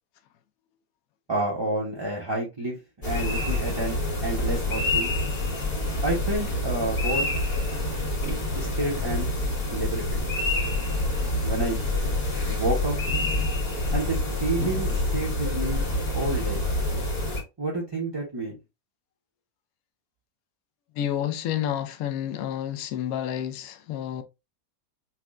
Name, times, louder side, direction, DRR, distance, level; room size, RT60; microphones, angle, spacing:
voice 1, 1.3-5.1 6.0-7.2 8.5-9.4 9.7-10.2 11.4-11.9 12.5-13.0 13.9-15.8 16.1-16.7 17.6-18.6, right 2 dB, 25° right, 0.6 m, -29 dB
sound 1, 3.0-17.4, left 2 dB, 55° left, 1.8 m, -27 dB
voice 2, 20.9-24.2, left 10 dB, 75° left, 1.0 m, -30 dB
5.8 x 2.1 x 2.4 m
omnidirectional pair, 1.6 m